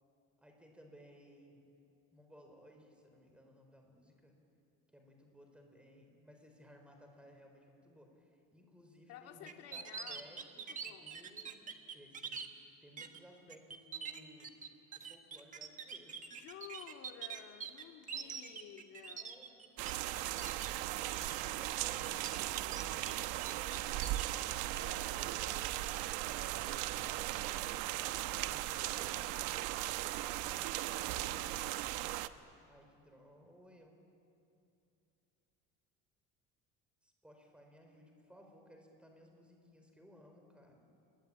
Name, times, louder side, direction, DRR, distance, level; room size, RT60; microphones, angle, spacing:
voice 1, 0.4-1.6 2.1-4.3 4.9-12.4 12.8-14.5 14.9-16.2 18.1-18.7 19.2-21.1 21.4-24.2 26.6-27.8 28.4-29.6 30.3-32.0 32.5-33.9 37.0-40.9, equal, 5° right, 3 dB, 4.3 m, -60 dB
voice 2, 9.1-10.3 10.5-11.1 16.3-19.3 24.7-26.1, left 10 dB, 55° left, 4 dB, 2.2 m, -53 dB
sound 1, 9.5-12.5 13.0-13.2 13.5-19.9 20.2-20.7 21.1-21.5 21.9-23.1 23.4-24.4, right 6 dB, 25° right, 1.4 m, -45 dB
sound 2, 19.8-32.3, right 15 dB, 90° right, 0.9 m, -37 dB
28.5 x 22.0 x 8.7 m, 2.7 s
cardioid pair, 155°, 29 cm